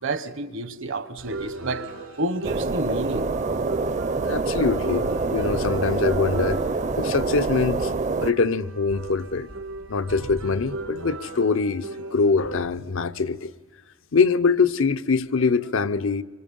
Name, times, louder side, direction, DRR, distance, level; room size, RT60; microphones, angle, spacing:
voice 1, 0.0-1.9 2.2-3.3, right 2 dB, 65° right, 1.2 m, -29 dB
sound 1, 1.2-12.6, right 2 dB, 85° right, 3.5 m, -37 dB
sound 2, 2.4-8.3, right 3 dB, 35° right, 0.7 m, -26 dB
voice 2, 4.3-6.6 7.0-7.9 8.2-9.5 9.9-13.5 14.1-16.2, left 4 dB, 70° left, 0.8 m, -23 dB
26.0 x 25.0 x 5.5 m
head